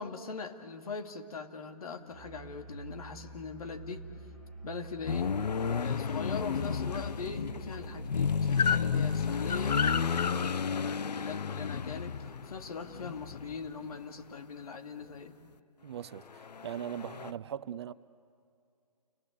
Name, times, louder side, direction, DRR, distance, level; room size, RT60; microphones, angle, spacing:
voice 1, 0.0-4.1 4.6-5.4 5.8-15.4, left 4 dB, 65° left, 2.5 m, -41 dB
Musical instrument, 2.1-8.5, right 2 dB, 5° left, 7.7 m, -47 dB
sound 1, 5.1-14.0 16.3-17.3, left 6 dB, 85° left, 0.7 m, -31 dB
voice 2, 15.8-17.9, right 10 dB, 40° right, 0.7 m, -40 dB
29.5 x 20.5 x 8.4 m
hypercardioid pair, 145°, 21 cm